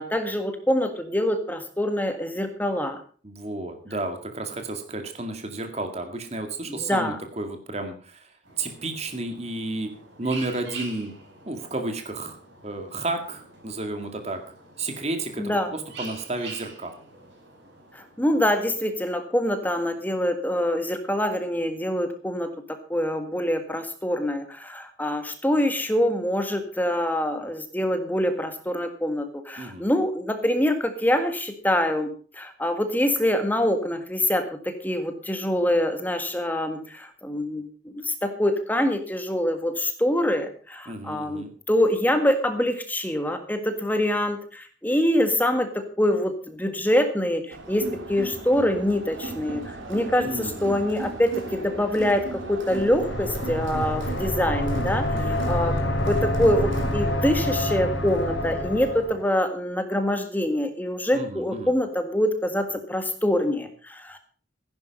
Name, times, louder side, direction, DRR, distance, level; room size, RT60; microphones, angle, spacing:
voice 1, 0.0-3.0 6.7-7.2 15.4-15.7 17.9-22.5 22.9-32.1 32.4-37.7 38.2-55.7 56.0-64.2, left 1 dB, 10° left, 7 dB, 1.8 m, -25 dB
voice 2, 3.2-9.9 10.2-11.1 11.5-12.4 12.6-14.4 14.8-17.0 29.6-29.9 40.9-41.5 50.2-50.7 55.1-55.4 61.1-61.7, right 2 dB, 35° right, 6 dB, 2.1 m, -32 dB
sound 1, 8.4-19.4, right 3 dB, 65° right, 6.5 m, -45 dB
Crowd, 47.5-59.1, right 2 dB, 85° right, 3.6 m, -37 dB
sound 2, 52.7-59.2, left 1 dB, 70° left, 4.0 m, -27 dB
15.5 x 10.5 x 5.3 m, 0.41 s
head